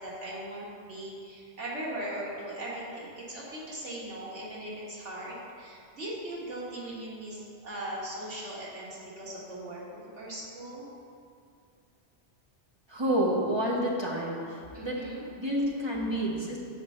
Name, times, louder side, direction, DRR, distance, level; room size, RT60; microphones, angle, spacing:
voice 1, 0.0-10.9 14.7-15.3, right 1 dB, 80° right, -6 dB, 1.8 m, -39 dB
voice 2, 12.9-15.1 15.4-16.6, equal, 25° right, -4 dB, 0.8 m, -29 dB
6.0 x 4.3 x 6.3 m, 2.4 s
omnidirectional pair, 1.2 m